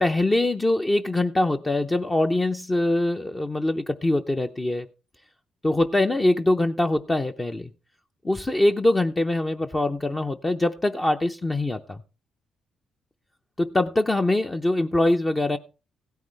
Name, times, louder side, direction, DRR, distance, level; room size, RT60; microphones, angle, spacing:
voice 1, 0.0-4.9 5.6-7.7 8.2-12.0 13.6-15.6, left 1 dB, 20° left, 0.6 m, -23 dB
16.0 x 9.3 x 3.3 m
cardioid pair, 90°, 0 cm